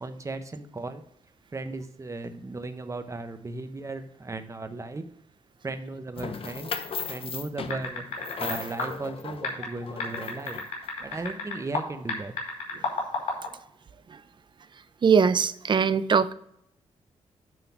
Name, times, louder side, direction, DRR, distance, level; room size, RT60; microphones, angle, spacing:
voice 1, 0.0-1.0 1.5-5.1 5.6-10.6 11.0-12.3, right 3 dB, 25° right, 1.0 m, -36 dB
sound 1, 6.2-10.9, left 6 dB, 50° left, 0.8 m, -37 dB
sound 2, 7.7-8.5 8.8-8.9 9.4-11.8 12.1-13.5, left 4 dB, 90° left, 2.6 m, -30 dB
voice 2, 15.0-16.3, right 6 dB, 40° right, 0.5 m, -21 dB
9.2 x 3.9 x 5.9 m
cardioid pair, 80°, 12 cm